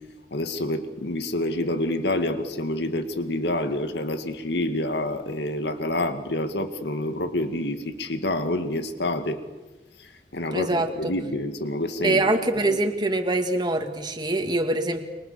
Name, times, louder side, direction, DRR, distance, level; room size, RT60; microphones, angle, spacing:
voice 1, 0.3-9.4 10.0-12.2 12.7-12.8, left 1 dB, 75° left, 8 dB, 2.2 m, -28 dB
voice 2, 10.5-11.1 12.0-15.0, right 2 dB, 25° right, 5 dB, 2.4 m, -24 dB
29.5 x 24.5 x 7.0 m, 1.1 s
head